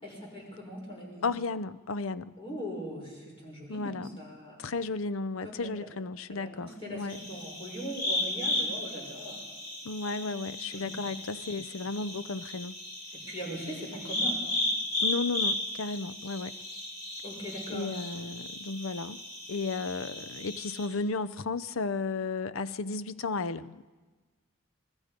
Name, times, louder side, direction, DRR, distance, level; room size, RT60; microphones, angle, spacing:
voice 1, 0.0-1.3 2.4-4.7 5.4-5.9 6.3-9.4 10.7-11.0 13.2-14.5 17.2-18.0, equal, 25° left, -1 dB, 6.1 m, -40 dB
voice 2, 1.2-2.3 3.7-4.1 4.6-7.2 9.8-12.8 15.0-16.5 17.7-19.2 19.5-23.8, left 3 dB, 65° left, 15 dB, 0.6 m, -34 dB
sound 1, 7.1-20.9, left 2 dB, 40° left, 3.8 m, -35 dB
27.0 x 20.5 x 5.2 m, 1.3 s
head